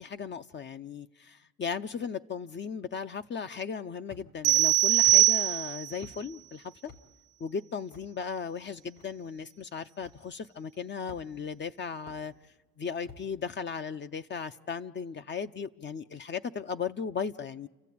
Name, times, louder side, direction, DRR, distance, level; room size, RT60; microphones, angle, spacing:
voice 1, 0.0-6.9 7.4-12.3 12.8-17.7, left 6 dB, 40° left, 0.6 m, -36 dB
sound 1, 4.1-4.5 5.1-5.2 6.0-6.2 6.8-7.0 7.9-8.1 9.0-9.1 10.0-10.2 11.1-11.5 12.1-12.2 13.0-13.3, left 4 dB, 90° left, 3.9 m, -50 dB
sound 2, 4.4-6.0, right 15 dB, 85° right, 0.8 m, -22 dB
29.5 x 14.0 x 8.5 m
cardioid pair, 90°, 30 cm